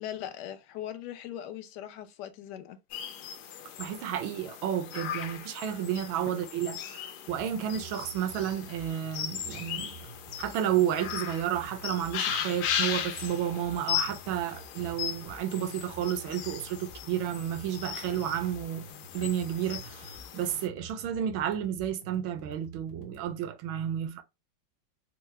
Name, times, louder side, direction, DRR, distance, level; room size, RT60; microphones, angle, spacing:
voice 1, 0.0-2.8, left 11 dB, 70° left, 1.0 m, -40 dB
sound 1, 2.9-20.7, left 10 dB, 90° left, 1.5 m, -37 dB
voice 2, 3.8-10.0 10.4-18.9 19.1-24.2, right 10 dB, 80° right, 1.3 m, -31 dB
sound 2, 7.3-23.3, right 3 dB, 35° left, 0.6 m, -49 dB
4.5 x 2.0 x 3.1 m
omnidirectional pair, 2.2 m